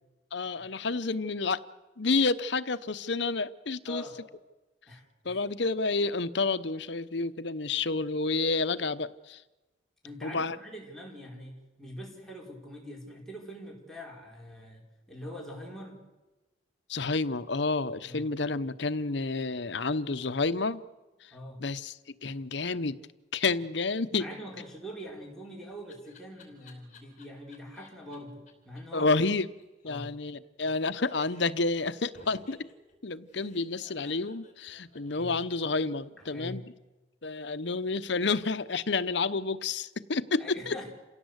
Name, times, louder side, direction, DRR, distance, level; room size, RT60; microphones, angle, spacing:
voice 1, 0.3-1.6 2.0-4.0 5.2-9.4 10.2-10.6 16.9-20.8 21.2-21.3 21.6-23.0 23.3-24.2 28.9-29.5 29.8-32.6 33.0-36.6 37.2-40.7, left 3 dB, 60° left, 0.9 m, -30 dB
voice 2, 3.8-4.2 4.9-5.4 10.0-16.1 18.0-18.3 21.3-21.6 24.2-29.2 29.8-30.1 35.1-35.4 36.3-36.6 40.4-40.9, equal, ahead, 4.7 m, -44 dB
Laughter, 25.1-28.2 28.5-28.6 28.8-28.9 29.1-29.2 29.4-30.7 31.0-31.6 32.1-35.9, left 3 dB, 40° left, 5.0 m, -57 dB
28.0 x 17.0 x 8.1 m
head